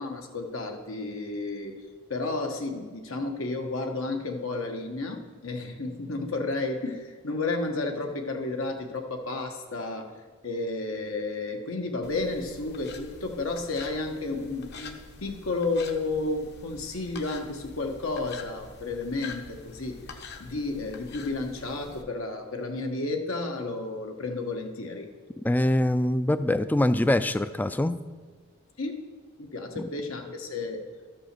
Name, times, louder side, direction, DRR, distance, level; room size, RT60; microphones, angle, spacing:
voice 1, 0.0-1.7 2.1-10.1 10.4-25.1 28.8-29.0 29.4-30.8, left 3 dB, 80° left, 3 dB, 1.3 m, -32 dB
sound 1, 12.0-22.0, left 4 dB, 55° left, 1.0 m, -46 dB
voice 2, 25.4-28.0, left 1 dB, 10° left, 13 dB, 0.3 m, -24 dB
12.5 x 6.2 x 6.7 m, 1.5 s
head